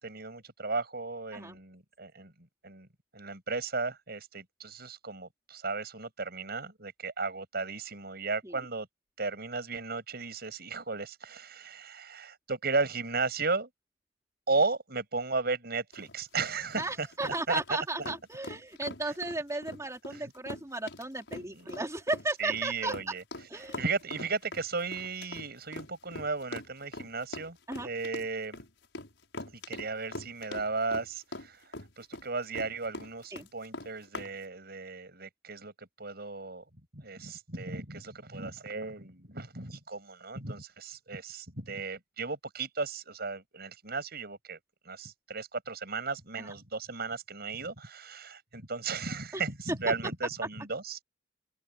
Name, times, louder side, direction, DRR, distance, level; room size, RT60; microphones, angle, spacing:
voice 1, 0.0-2.3 2.6-2.9 3.1-8.9 9.2-13.7 14.5-17.6 21.5-21.7 22.4-23.2 23.6-28.6 29.7-31.6 32.0-36.6 36.9-44.6 44.9-51.0, right 4 dB, 60° right, 7.5 m, -35 dB
sound 1, 15.9-34.3, left 2 dB, 80° left, 6.3 m, -42 dB
voice 2, 16.8-23.2 23.5-23.8 27.7-27.9 33.3-33.5 46.4-46.5 49.3-49.4, right 2 dB, 15° right, 3.6 m, -35 dB
open air
head